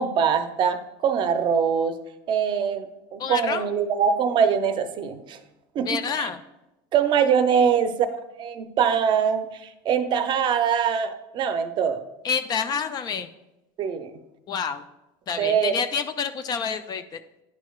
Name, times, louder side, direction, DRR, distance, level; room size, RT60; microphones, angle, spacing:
voice 1, 0.0-1.9 2.3-2.9 3.1-5.4 5.7-6.3 6.9-8.0 8.4-12.0 13.8-14.1 15.4-15.7, right 7 dB, 40° right, 9 dB, 0.6 m, -23 dB
voice 2, 3.2-3.7 5.9-6.4 12.2-13.3 14.5-14.8 15.3-17.2, left 6 dB, 35° left, 10 dB, 0.4 m, -28 dB
10.5 x 4.6 x 2.3 m, 0.95 s
supercardioid pair, 120°, 12 cm